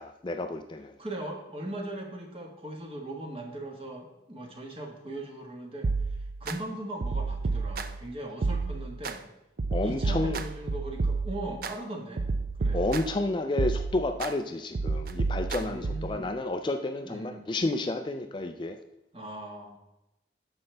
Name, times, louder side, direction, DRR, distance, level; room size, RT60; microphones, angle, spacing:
voice 1, 0.0-0.9 9.7-10.4 12.7-18.8, left 2 dB, 25° left, 7 dB, 0.4 m, -30 dB
voice 2, 1.0-5.9 6.4-9.2 9.8-12.3 12.6-12.8 15.6-16.3 17.0-17.5 19.1-19.8, right 1 dB, 30° right, 2 dB, 1.4 m, -39 dB
sound 1, 5.8-6.6 7.0-8.1 8.4-9.2 9.6-11.7 12.2-13.2 13.6-14.3 14.7-16.2, right 3 dB, 50° right, 0.5 m, -30 dB
9.6 x 6.8 x 3.3 m, 0.93 s
head